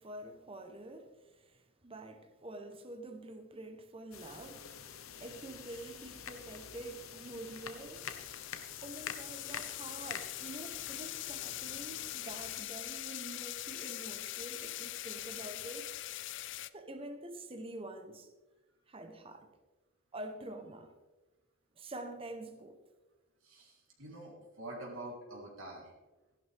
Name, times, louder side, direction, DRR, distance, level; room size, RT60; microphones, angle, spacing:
voice 1, 0.0-4.6 5.2-8.3 8.8-15.9 16.7-18.3 18.9-19.5 20.1-20.9 21.7-22.8, right 1 dB, 25° right, 1.0 m, -47 dB
sound 1, 4.1-12.6, left 7 dB, 80° left, 1.0 m, -47 dB
sound 2, 7.9-16.7, left 15 dB, 60° left, 0.4 m, -42 dB
voice 2, 23.4-25.9, right 1 dB, 80° right, 3.4 m, -46 dB
14.5 x 11.0 x 3.5 m
head